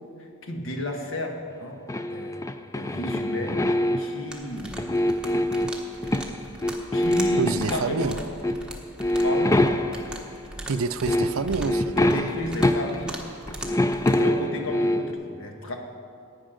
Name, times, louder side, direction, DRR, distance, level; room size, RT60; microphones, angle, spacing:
voice 1, 0.2-1.8 2.1-2.4 2.7-4.8 6.9-8.3 9.2-9.6 12.0-13.2 14.0-15.8, left 1 dB, 65° left, 3 dB, 1.6 m, -32 dB
sound 1, 1.9-4.2 4.7-6.4 6.6-8.1 8.4-8.7 9.0-10.2 10.7-10.8 11.1-13.2 13.5-15.1, left 1 dB, 15° left, 0.4 m, -24 dB
sound 2, 4.3-14.2, right 1 dB, 5° right, 1.1 m, -40 dB
voice 2, 7.4-8.2 10.7-12.3, right 5 dB, 70° right, 12 dB, 0.5 m, -28 dB
16.0 x 9.6 x 5.1 m, 2.3 s
head